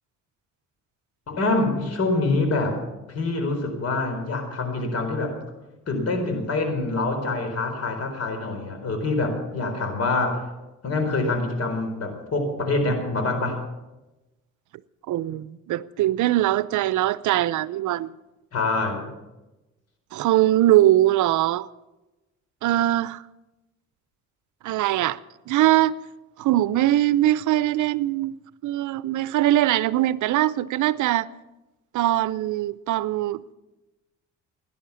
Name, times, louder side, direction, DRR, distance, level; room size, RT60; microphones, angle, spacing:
voice 1, 1.3-2.8 3.1-5.3 5.9-10.4 10.8-13.6 18.5-19.1, left 2 dB, 55° left, 4.3 m, -25 dB
voice 2, 15.1-18.1 20.1-21.7 22.6-23.2 24.6-25.2 25.5-25.9 26.4-28.3 28.6-31.3 31.9-33.5, right 14 dB, 75° right, 0.6 m, -21 dB
17.0 x 10.5 x 7.0 m
cardioid pair, 90°, 30 cm